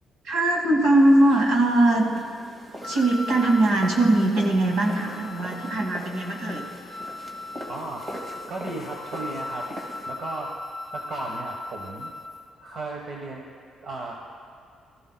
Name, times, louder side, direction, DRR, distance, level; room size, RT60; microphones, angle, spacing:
voice 1, 0.2-2.0 2.8-6.7, right 1 dB, 75° right, 0 dB, 2.2 m, -20 dB
sound 1, 0.9-10.1, equal, 35° right, 2.0 m, -41 dB
sound 2, 2.8-12.4, left 2 dB, 10° left, 1.4 m, -38 dB
voice 2, 7.7-8.0 8.5-9.7 10.1-10.5 10.9-12.1 12.6-13.4 13.8-14.1, right 2 dB, 60° right, 0 dB, 1.2 m, -35 dB
19.0 x 14.0 x 2.2 m, 2.3 s
cardioid pair, 90°, 0 cm